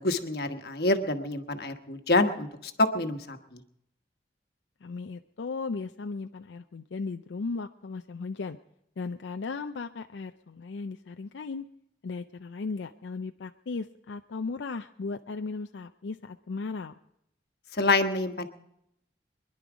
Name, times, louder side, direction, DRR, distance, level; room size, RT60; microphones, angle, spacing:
voice 1, 0.0-3.6 17.7-18.5, left 2 dB, 60° left, 7 dB, 1.2 m, -27 dB
voice 2, 4.8-8.6 9.0-11.7 12.0-16.9, left 4 dB, 85° left, 7 dB, 0.5 m, -36 dB
24.5 x 11.0 x 5.0 m, 0.79 s
head